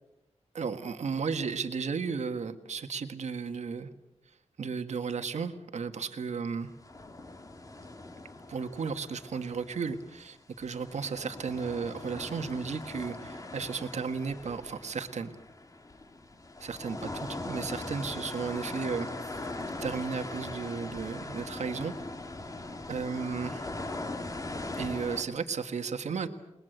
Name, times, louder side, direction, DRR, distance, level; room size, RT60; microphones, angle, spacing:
voice 1, 0.5-3.9 4.6-6.7 8.5-15.3 16.6-19.5 19.8-21.9 22.9-23.7 24.8-26.3, right 5 dB, 80° right, 7 dB, 1.7 m, -34 dB
sound 1, 6.8-10.3 10.6-25.2, left 2 dB, 30° left, 2.0 m, -40 dB
29.5 x 20.5 x 7.9 m, 0.92 s
wide cardioid pair, 135°, 12 cm